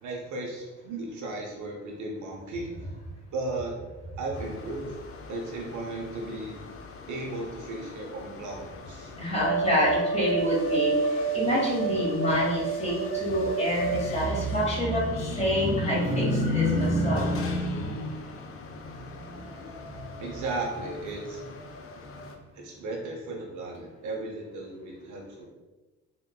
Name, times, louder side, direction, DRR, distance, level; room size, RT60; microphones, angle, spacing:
voice 1, 0.0-2.7 3.3-3.8 4.2-4.9 5.3-6.7 7.1-9.1 20.2-21.4 22.6-25.4, right 2 dB, 50° right, 0 dB, 0.8 m, -35 dB
sound 1, 4.3-22.3, right 3 dB, 35° left, 0.5 m, -34 dB
voice 2, 9.2-19.8 20.1-20.2 22.1-22.2, equal, 15° left, -4 dB, 1.5 m, -27 dB
3.6 x 2.8 x 2.2 m, 1.2 s
hypercardioid pair, 50°, 38 cm